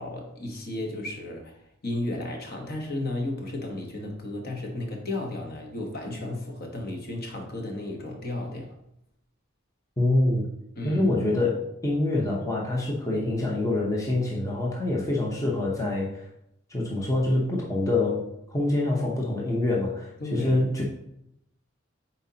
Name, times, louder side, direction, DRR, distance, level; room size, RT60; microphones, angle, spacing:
voice 1, 0.0-1.6 1.8-8.7 10.8-11.1 20.2-20.6, left 1 dB, 50° left, 2 dB, 1.2 m, -33 dB
voice 2, 10.0-10.5 10.8-16.2 16.7-18.2 18.5-20.8, left 2 dB, 15° left, -3 dB, 0.8 m, -25 dB
7.9 x 4.2 x 2.8 m, 0.79 s
head